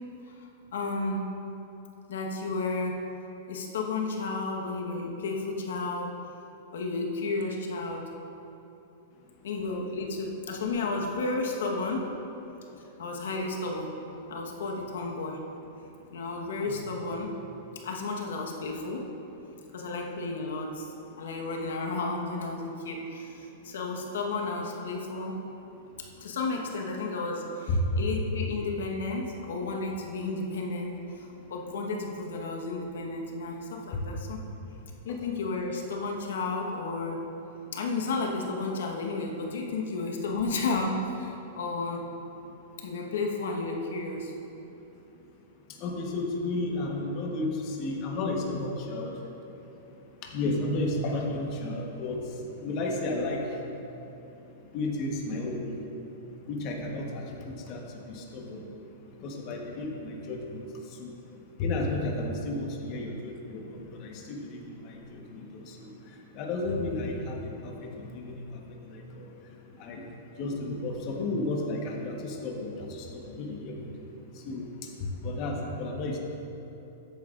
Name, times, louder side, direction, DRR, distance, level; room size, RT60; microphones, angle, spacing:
voice 1, 0.3-1.3 2.1-3.0 3.5-6.1 6.7-8.1 9.4-12.1 13.0-14.0 14.3-15.4 16.1-17.4 17.8-19.1 19.7-25.4 26.2-34.4 35.0-37.2 37.7-42.0 42.8-44.3, left 3 dB, 85° left, 1 dB, 1.2 m, -32 dB
voice 2, 45.8-49.2 50.3-52.3 52.6-53.5 54.7-55.7 56.5-58.6 59.2-60.6 61.0-61.1 61.6-65.9 66.3-68.4 68.9-69.3 69.8-70.0 70.4-73.9 74.4-74.7 75.2-76.2, left 2 dB, 35° left, 0 dB, 1.1 m, -32 dB
13.5 x 9.1 x 2.5 m, 3.0 s
supercardioid pair, 160°, 0 cm